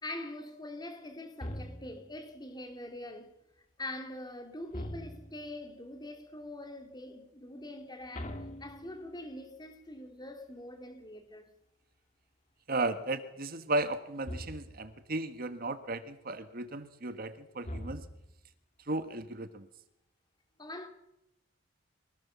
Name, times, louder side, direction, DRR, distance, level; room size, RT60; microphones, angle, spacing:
voice 1, 0.0-3.4 3.8-11.5 20.6-20.9, left 1 dB, 20° left, 3.2 m, -44 dB
sound 1, 1.4-2.2 4.7-5.5 8.1-9.3 14.2-14.9 17.6-18.5, equal, 35° left, 2.0 m, -42 dB
voice 2, 12.7-18.0 18.9-19.7, right 2 dB, 50° right, 1.5 m, -35 dB
24.0 x 18.5 x 7.3 m
head